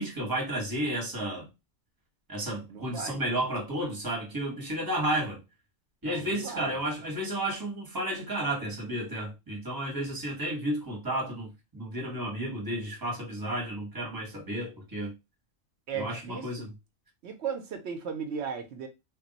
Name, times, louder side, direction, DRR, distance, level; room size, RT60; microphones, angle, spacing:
voice 1, 0.0-1.5 2.3-5.4 6.0-15.1 15.9-16.7, right 1 dB, 20° right, 0.9 m, -32 dB
voice 2, 2.7-3.2 6.0-6.8 15.9-16.7 17.2-18.9, right 6 dB, 65° right, 0.8 m, -36 dB
2.3 x 2.2 x 3.8 m
omnidirectional pair, 1.4 m